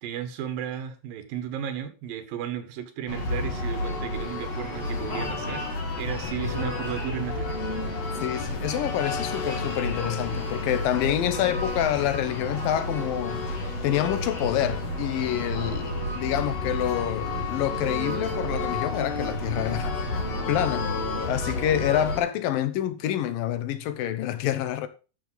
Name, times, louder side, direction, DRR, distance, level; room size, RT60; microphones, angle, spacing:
voice 1, 0.0-7.6, right 10 dB, 90° right, 3.2 m, -34 dB
sound 1, 3.1-22.2, left 2 dB, 50° left, 4.3 m, -30 dB
voice 2, 8.2-13.5 13.8-20.0 20.5-20.9 21.3-24.9, left 11 dB, 85° left, 2.8 m, -27 dB
12.0 x 6.9 x 4.0 m
omnidirectional pair, 3.9 m